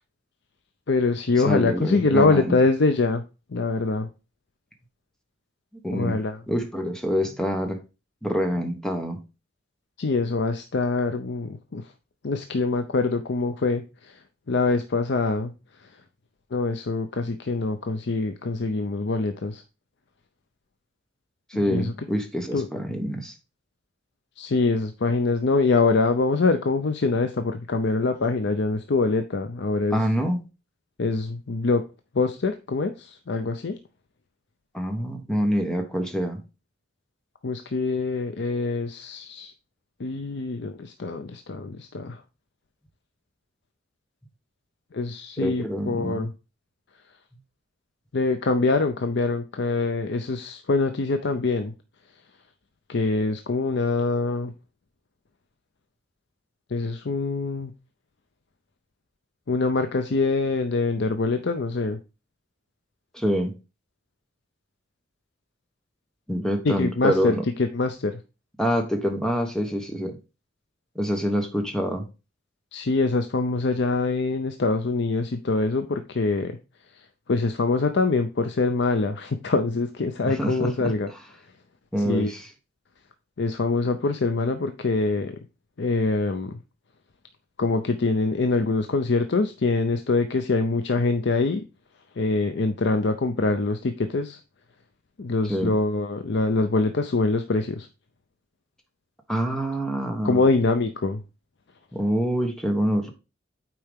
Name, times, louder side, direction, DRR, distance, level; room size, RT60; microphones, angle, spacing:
voice 1, 0.9-3.2 3.5-4.1 5.9-6.4 10.0-11.9 12.2-15.5 15.8-16.0 16.5-19.6 21.5-21.9 22.5-22.7 24.4-30.1 31.0-31.8 32.1-33.8 37.4-39.5 40.0-42.2 44.9-46.3 48.1-51.7 52.9-54.5 56.7-57.7 59.5-62.0 66.6-68.2 72.7-76.6 76.9-81.1 82.0-82.3 83.4-85.4 85.8-86.5 87.6-91.6 92.2-94.4 95.2-97.9 100.2-101.2, left 3 dB, 60° left, 8 dB, 0.6 m, -24 dB
voice 2, 1.4-2.6 5.8-6.2 6.5-7.8 8.2-9.2 21.5-23.3 29.9-30.4 34.7-36.4 45.4-46.3 63.1-63.5 66.3-67.4 68.6-70.2 70.9-72.0 80.4-80.9 81.9-82.4 95.5-95.7 99.3-100.5 101.9-103.1, equal, 5° left, 4 dB, 1.2 m, -26 dB
8.7 x 4.6 x 3.6 m, 0.29 s
head